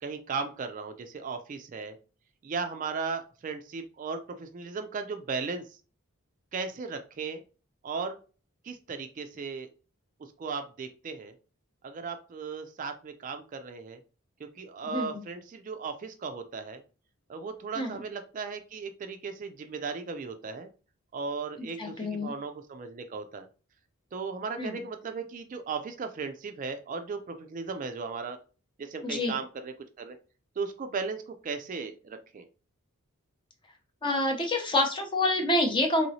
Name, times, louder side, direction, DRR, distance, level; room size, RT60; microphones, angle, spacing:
voice 1, 0.0-2.0 2.4-5.8 6.5-7.4 7.8-8.2 8.6-9.7 10.4-11.3 11.8-14.0 14.6-16.8 17.3-20.7 21.1-23.5 24.1-28.4 28.8-30.2 30.6-32.4, right 5 dB, 35° right, 8 dB, 0.3 m, -36 dB
voice 2, 14.8-15.2 17.7-18.0 21.6-22.3 24.6-24.8 29.0-29.3 34.0-36.1, left 1 dB, 20° left, 3 dB, 0.6 m, -27 dB
3.0 x 2.9 x 2.7 m, 0.35 s
head